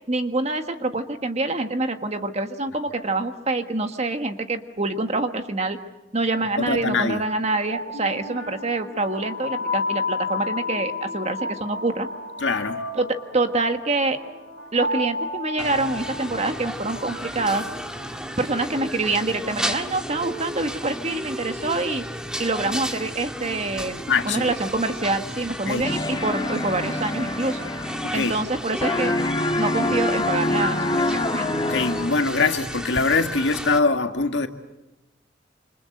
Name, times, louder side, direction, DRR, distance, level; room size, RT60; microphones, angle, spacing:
voice 1, 0.1-5.8 6.1-12.1 12.9-14.2 14.7-17.6 18.4-22.0 22.4-27.6 28.1-29.1 29.6-31.5, right 2 dB, 35° right, 1.6 m, -26 dB
voice 2, 6.6-7.2 12.4-12.8 24.1-24.5 25.7-25.9 28.0-28.3 31.6-34.5, left 4 dB, 70° left, 1.9 m, -23 dB
sound 1, 7.5-18.6, left 2 dB, 80° right, 4.9 m, -32 dB
sound 2, 15.6-33.8, equal, 5° right, 1.6 m, -33 dB
sound 3, 25.8-28.6 28.8-32.4, left 2 dB, 25° left, 1.9 m, -26 dB
28.0 x 26.0 x 7.9 m
head